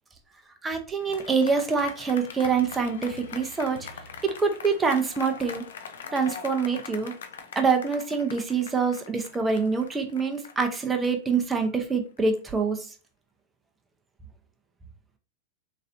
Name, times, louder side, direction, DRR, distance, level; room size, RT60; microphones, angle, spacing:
voice 1, 0.6-3.9 4.2-5.6 6.1-7.1 7.6-12.9, right 5 dB, 15° right, 4 dB, 0.6 m, -25 dB
sound 1, 1.0-12.4, left 6 dB, 80° left, 0.4 m, -42 dB
3.1 x 2.6 x 2.5 m, 0.37 s
hypercardioid pair, 105°, 0 cm